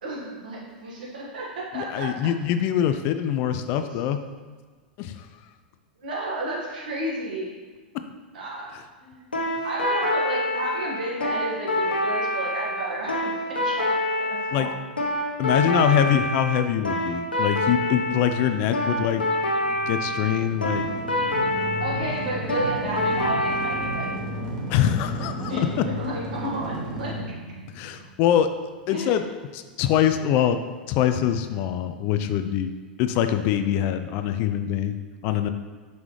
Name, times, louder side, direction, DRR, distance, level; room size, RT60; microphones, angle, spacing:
voice 1, 0.0-2.1 6.0-7.5 8.3-8.7 9.0-9.2 9.6-14.0 14.3-14.7 15.4-16.1 21.8-24.2 25.4-27.2 28.9-29.2, right 2 dB, 65° right, -5 dB, 1.8 m, -32 dB
voice 2, 1.7-4.2 5.0-5.3 14.5-14.7 15.4-19.2 19.9-20.9 24.7-25.8 27.7-28.5 28.9-29.3 29.5-32.7 33.0-35.0 35.2-35.5, left 10 dB, 40° left, 9 dB, 0.4 m, -24 dB
sound 1, 9.3-24.2, left 1 dB, 85° left, 0.9 m, -26 dB
sound 2, 17.6-28.6, right 1 dB, 45° right, 1.3 m, -35 dB
5.9 x 5.4 x 3.2 m, 1.5 s
figure-of-eight pair, 90°, 5 cm